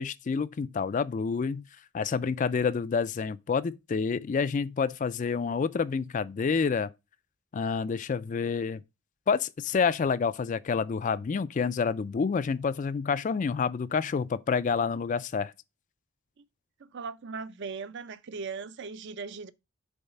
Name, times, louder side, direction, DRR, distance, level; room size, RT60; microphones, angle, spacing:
voice 1, 0.0-1.6 1.9-6.9 7.5-8.8 9.3-15.5, left 5 dB, 35° left, 0.3 m, -28 dB
voice 2, 16.8-19.5, right 5 dB, 55° right, 0.5 m, -38 dB
7.0 x 3.9 x 5.5 m
head